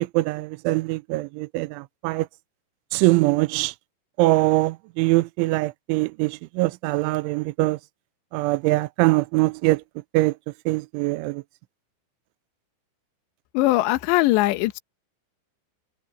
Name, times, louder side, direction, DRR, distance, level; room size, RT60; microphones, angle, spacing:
voice 1, 0.1-2.3 2.9-3.7 4.2-7.8 8.3-9.8 10.1-10.3 10.7-11.4, right 20 dB, 90° right, 3.1 m, -22 dB
voice 2, 13.5-14.8, left 18 dB, 75° left, 3.2 m, -20 dB
omnidirectional pair, 5.4 m